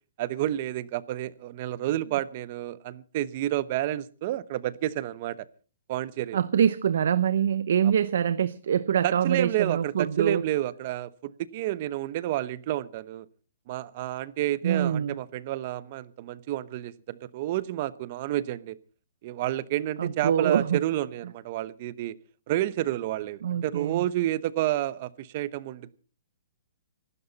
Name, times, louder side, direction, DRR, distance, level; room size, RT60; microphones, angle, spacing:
voice 1, 0.2-5.5 5.9-6.4 9.0-13.3 13.7-18.8 19.2-22.2 22.5-26.0, right 14 dB, 35° right, 0.9 m, -30 dB
voice 2, 6.3-10.4 14.6-15.2 20.0-20.8 23.4-24.1, right 8 dB, 65° right, 0.7 m, -25 dB
25.5 x 12.5 x 4.1 m
hypercardioid pair, 165°, 0 cm